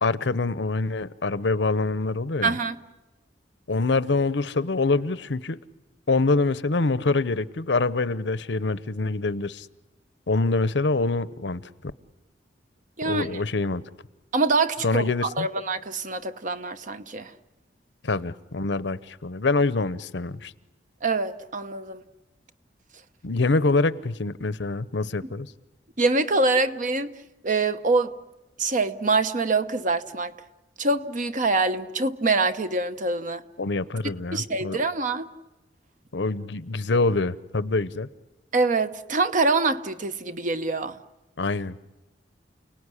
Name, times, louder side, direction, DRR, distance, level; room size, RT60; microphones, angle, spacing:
voice 1, 0.0-2.5 3.7-5.6 6.1-9.7 10.3-11.9 13.0-13.8 14.8-15.5 18.0-20.5 23.2-25.5 33.6-34.8 36.1-38.1 41.4-41.8, left 3 dB, 75° left, 0.9 m, -25 dB
voice 2, 2.4-2.8 13.0-13.3 14.3-17.3 21.0-22.0 26.0-27.1 27.4-28.2 28.6-30.3 30.8-33.4 34.3-35.3 38.5-41.0, right 3 dB, 45° right, 1.0 m, -25 dB
29.5 x 18.5 x 9.9 m
head